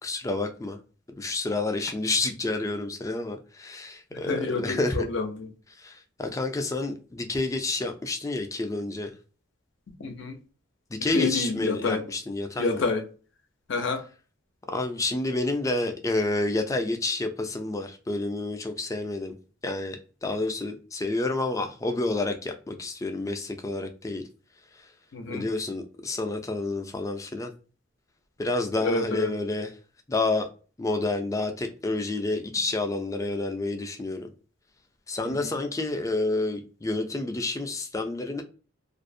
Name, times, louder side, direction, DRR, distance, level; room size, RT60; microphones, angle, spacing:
voice 1, 0.0-0.8 1.2-5.1 5.8-9.1 10.9-12.8 14.7-19.4 19.6-24.2 24.7-24.9 25.3-27.5 28.4-29.7 30.1-30.5 30.8-34.3 35.1-38.4, left 2 dB, 15° left, 0.4 m, -29 dB
voice 2, 4.3-5.5 10.0-10.4 11.1-12.0 12.6-13.0 13.7-14.0 25.1-25.4 28.8-29.3 35.4-35.5, left 3 dB, 65° left, 0.5 m, -28 dB
2.5 x 2.0 x 2.5 m
head